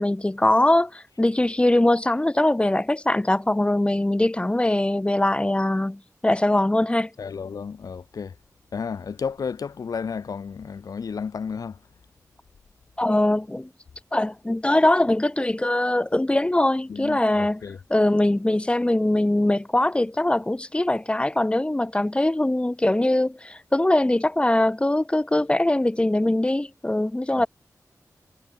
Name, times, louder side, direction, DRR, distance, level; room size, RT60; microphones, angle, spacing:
voice 1, 0.0-7.1 13.0-13.7 14.1-17.6 17.9-27.5, left 1 dB, 20° left, 7.5 m, -22 dB
voice 2, 7.2-8.3 8.7-11.8 16.9-17.8 27.4-27.5, left 6 dB, 85° left, 5.5 m, -32 dB
wide cardioid pair, 75°, 6 cm